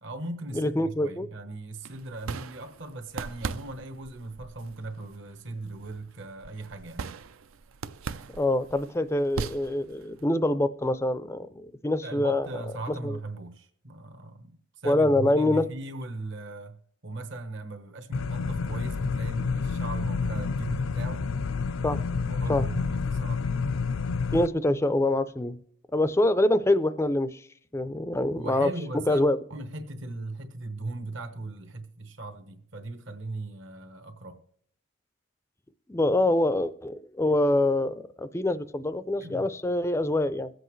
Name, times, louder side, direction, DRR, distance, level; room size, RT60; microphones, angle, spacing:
voice 1, 0.0-7.0 12.0-16.8 17.0-21.3 22.1-23.6 28.3-29.2 29.5-34.4 39.2-39.5, right 2 dB, 60° right, 1.1 m, -38 dB
voice 2, 0.5-1.3 8.4-12.5 13.0-13.2 14.8-15.7 21.8-22.0 22.5-22.7 24.3-25.6 25.9-27.5 27.7-28.7 29.1-29.4 35.9-40.5, left 1 dB, 15° left, 0.4 m, -25 dB
sound 1, 1.8-10.3, right 5 dB, 80° right, 0.5 m, -40 dB
sound 2, 18.1-24.5, left 4 dB, 75° left, 0.4 m, -29 dB
22.0 x 7.8 x 3.1 m
head